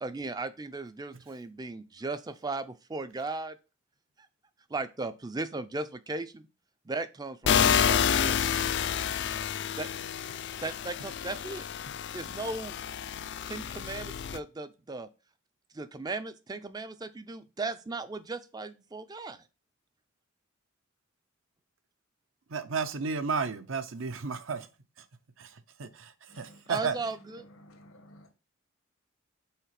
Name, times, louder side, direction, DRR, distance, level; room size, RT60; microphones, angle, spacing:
voice 1, 0.0-3.6 4.7-6.5 6.9-8.5 9.8-9.9 10.6-11.7 12.1-12.7 13.5-15.1 15.7-19.4 26.7-27.4, right 3 dB, 20° right, 0.4 m, -37 dB
sound 1, 7.5-14.4, left 8 dB, 55° left, 0.4 m, -29 dB
voice 2, 22.5-24.7 25.4-25.5 25.8-26.1 26.4-26.9, right 5 dB, 65° right, 0.7 m, -32 dB
voice 3, 26.3-26.6 27.4-28.3, left 1 dB, 85° left, 1.4 m, -54 dB
5.7 x 3.9 x 5.8 m
head